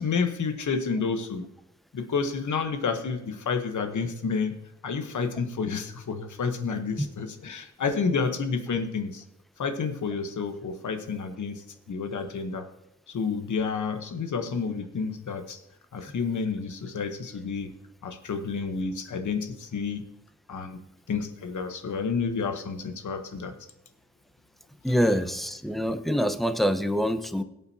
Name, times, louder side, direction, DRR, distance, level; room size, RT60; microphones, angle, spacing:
voice 1, 0.0-1.5 1.9-4.5 4.8-9.2 9.6-11.6 11.9-12.6 13.1-15.6 15.9-17.7 18.0-20.0 20.5-20.8 21.1-23.5, left 5 dB, 90° left, 6 dB, 1.1 m, -30 dB
voice 2, 24.8-27.4, equal, ahead, 8 dB, 1.0 m, -25 dB
21.5 x 8.8 x 2.8 m, 0.85 s
wide cardioid pair, 80°, 29 cm